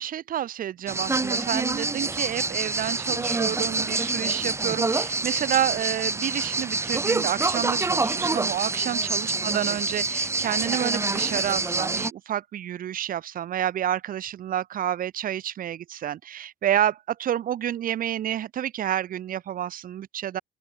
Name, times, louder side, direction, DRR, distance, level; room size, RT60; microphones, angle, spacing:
voice 1, 0.0-20.4, right 11 dB, 55° right, 2.1 m, -29 dB
sound 1, 0.9-12.1, right 3 dB, 15° right, 1.3 m, -26 dB
open air
cardioid pair, 110°, 17 cm